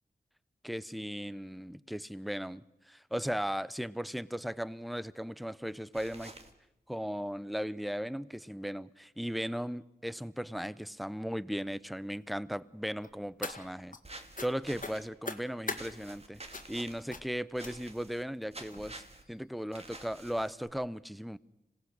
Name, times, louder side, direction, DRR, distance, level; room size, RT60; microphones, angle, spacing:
voice 1, 0.6-6.3 6.9-16.4 16.7-21.4, equal, ahead, 0.7 m, -37 dB
sound 1, 5.9-6.5 14.0-15.1 15.7-17.0 17.5-18.2 18.5-19.2 19.7-20.7, right 2 dB, 40° right, 2.3 m, -49 dB
sound 2, 13.0-14.0 14.4-14.5 14.8-15.8 16.5-16.8 17.1-17.3 17.6-18.0 18.7-18.8 19.2-19.4 19.7-19.8, left 3 dB, 50° left, 2.0 m, -41 dB
26.0 x 17.5 x 6.6 m
cardioid pair, 45°, 17 cm